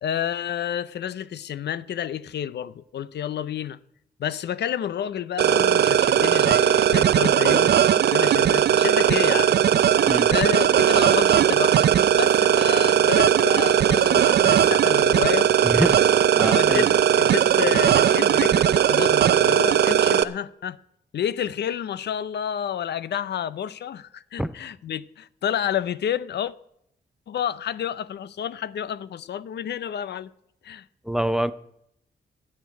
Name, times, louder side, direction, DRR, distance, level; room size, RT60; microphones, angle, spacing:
voice 1, 0.0-3.8 4.2-9.5 10.3-15.5 15.7-16.1 16.5-20.8 21.1-26.5 27.3-30.3 30.6-30.9, left 9 dB, 75° left, 0.5 m, -30 dB
sound 1, 5.4-20.2, right 9 dB, 70° right, 0.5 m, -18 dB
voice 2, 15.6-16.0 16.3-16.9 24.4-24.5 31.1-31.5, equal, 5° right, 0.5 m, -25 dB
12.0 x 6.7 x 9.3 m
wide cardioid pair, 115°, 18 cm